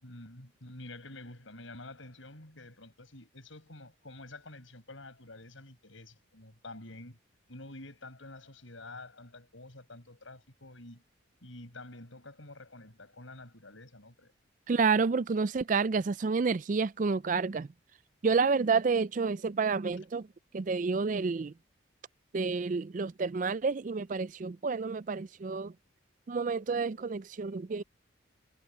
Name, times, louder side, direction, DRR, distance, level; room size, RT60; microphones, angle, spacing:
voice 1, 0.0-7.2 7.5-11.0 11.4-14.3, left 2 dB, 75° left, 5.6 m, -48 dB
voice 2, 14.7-17.7 18.2-20.3 20.5-21.5 22.3-25.7 26.3-27.8, right 4 dB, 40° right, 0.4 m, -29 dB
head